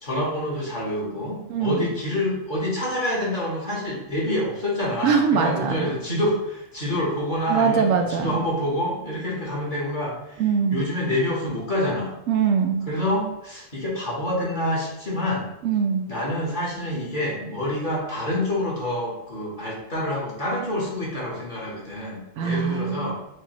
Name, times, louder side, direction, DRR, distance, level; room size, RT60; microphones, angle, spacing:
voice 1, 0.0-10.4 10.7-12.1 12.9-15.5 16.1-23.2, left 1 dB, 35° left, -5 dB, 1.3 m, -27 dB
voice 2, 1.5-1.8 5.0-5.9 7.5-8.4 10.4-10.8 12.3-12.9 15.6-16.1 22.4-23.1, right 6 dB, 70° right, 3 dB, 0.9 m, -22 dB
6.5 x 2.4 x 3.0 m, 0.87 s
omnidirectional pair, 1.4 m